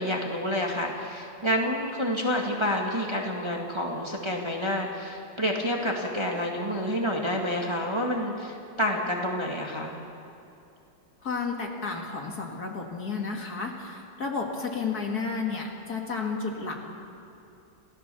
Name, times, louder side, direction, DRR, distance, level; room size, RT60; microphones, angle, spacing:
voice 1, 0.0-10.0, equal, 15° right, 0 dB, 1.9 m, -28 dB
voice 2, 11.2-16.9, left 4 dB, 50° left, 1 dB, 2.6 m, -32 dB
29.0 x 16.5 x 7.0 m, 2.7 s
omnidirectional pair, 2.2 m